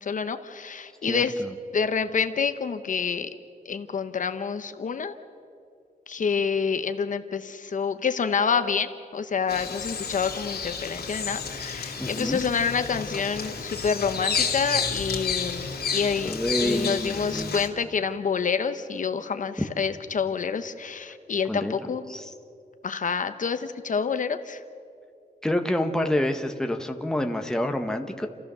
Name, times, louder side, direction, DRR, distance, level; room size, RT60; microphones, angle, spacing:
voice 1, 0.0-1.4 1.7-3.3 3.7-5.2 6.1-22.1 22.8-24.6, left 6 dB, 55° left, 10 dB, 0.8 m, -28 dB
Bird vocalization bird call bird song, 9.5-17.7, left 6 dB, 80° left, 2.4 m, -31 dB
voice 2, 12.0-12.4 16.2-17.5 21.5-21.8 22.1-22.2 25.4-28.3, left 1 dB, 5° left, 5 dB, 1.0 m, -27 dB
29.5 x 14.0 x 6.9 m, 2.5 s
wide cardioid pair, 175°, 16 cm